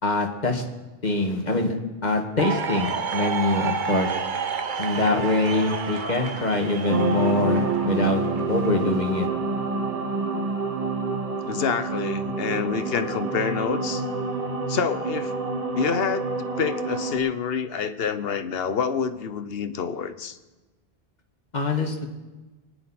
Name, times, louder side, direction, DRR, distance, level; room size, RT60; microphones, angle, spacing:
voice 1, 0.0-0.6 1.0-1.7 2.0-4.1 4.8-9.3 21.5-22.1, left 2 dB, 45° left, 3 dB, 1.7 m, -24 dB
sound 1, 2.4-8.9, right 5 dB, 55° right, 1.0 m, -30 dB
sound 2, 6.9-17.2, right 3 dB, 35° right, 1.4 m, -27 dB
voice 2, 11.5-14.0 14.7-15.3 15.7-16.3 16.6-20.4, left 6 dB, 70° left, 11 dB, 1.0 m, -27 dB
24.0 x 10.0 x 4.2 m, 1.2 s
omnidirectional pair, 1.0 m